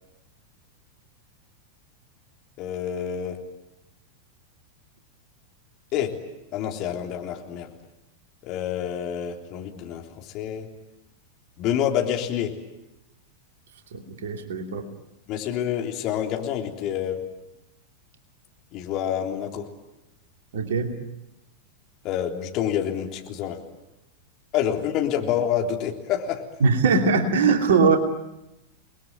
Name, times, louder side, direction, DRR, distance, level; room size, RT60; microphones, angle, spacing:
voice 1, 2.6-3.4 5.9-6.1 6.5-7.7 8.4-10.7 11.6-12.5 15.3-17.2 18.7-19.7 22.0-23.6 24.5-26.4, left 9 dB, 40° left, 2 dB, 3.5 m, -27 dB
voice 2, 13.9-14.9 20.5-21.0 26.6-28.0, right 4 dB, 60° right, 3 dB, 2.8 m, -21 dB
30.0 x 21.0 x 9.3 m, 0.93 s
figure-of-eight pair, 90°, 0 cm